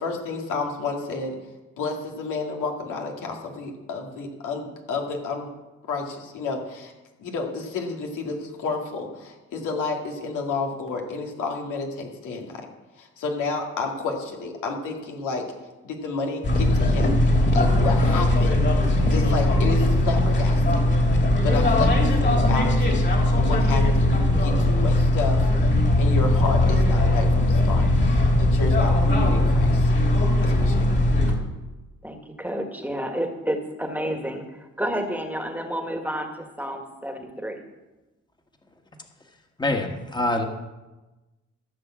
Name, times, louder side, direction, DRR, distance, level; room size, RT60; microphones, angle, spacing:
voice 1, 0.0-1.4 1.8-5.5 5.8-6.9 7.2-12.7 13.0-15.4 15.8-17.2 17.5-18.6 19.0-20.9 21.4-23.0 23.4-25.5 26.0-27.9 28.4-29.9 30.4-30.9, left 4 dB, 85° left, 1 dB, 2.5 m, -30 dB
sound 1, 16.4-31.3, left 1 dB, 35° left, 2.9 m, -19 dB
voice 2, 32.0-37.6, equal, 5° right, 4 dB, 1.7 m, -30 dB
voice 3, 39.6-40.4, left 2 dB, 15° left, 4 dB, 1.7 m, -25 dB
15.0 x 6.8 x 7.5 m, 1.1 s
cardioid pair, 90°, 30 cm